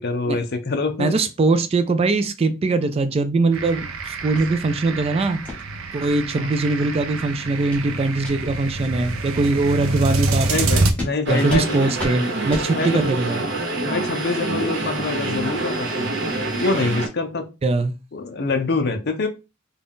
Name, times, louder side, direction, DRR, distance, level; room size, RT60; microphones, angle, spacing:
voice 1, 0.0-1.2 6.3-6.5 10.5-11.8 12.7-13.0 13.8-16.1 16.6-17.5 18.1-19.3, left 3 dB, 50° left, 0.6 m, -25 dB
voice 2, 1.0-5.4 5.9-10.7 11.3-13.6 17.6-18.0, right 3 dB, 30° right, 0.3 m, -21 dB
sound 1, 3.5-10.9, right 2 dB, 75° right, 0.6 m, -26 dB
sound 2, 4.3-4.5 4.9-5.0 5.4-5.6 6.0-6.1 6.6-6.7 7.1-7.3 7.7-7.9 8.2-8.3 8.8-8.9 9.3-9.5 9.9-10.0 10.4-10.6 11.0-11.1 11.5-11.7 12.0-12.1 12.5-12.7, left 1 dB, 5° left, 1.1 m, -32 dB
sound 3, 11.3-17.1, right 2 dB, 60° right, 1.0 m, -26 dB
3.8 x 2.3 x 3.6 m
head